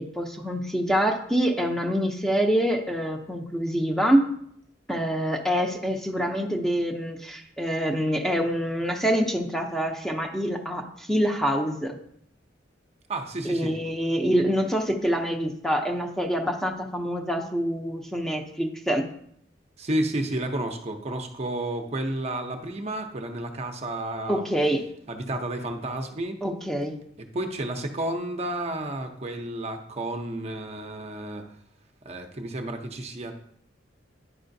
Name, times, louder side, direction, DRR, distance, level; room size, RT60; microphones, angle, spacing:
voice 1, 0.0-4.2 4.9-12.0 13.4-19.0 24.3-24.8 26.4-26.9, equal, 5° left, 3 dB, 0.6 m, -26 dB
voice 2, 13.1-13.7 19.8-24.4 25.1-26.4 27.2-31.4 32.0-33.3, right 1 dB, 35° right, 4 dB, 0.6 m, -31 dB
9.9 x 4.8 x 2.6 m, 0.69 s
head